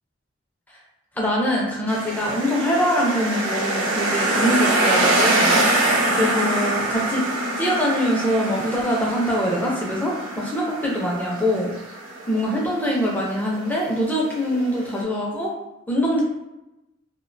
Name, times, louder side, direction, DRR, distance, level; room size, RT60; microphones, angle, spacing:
voice 1, 1.2-5.6 6.2-7.2 7.6-11.7 12.3-15.5 15.9-16.2, equal, 10° left, -4 dB, 0.4 m, -23 dB
sound 1, 1.9-15.0, right 2 dB, 85° right, 0.7 m, -24 dB
2.4 x 2.1 x 2.5 m, 0.94 s
head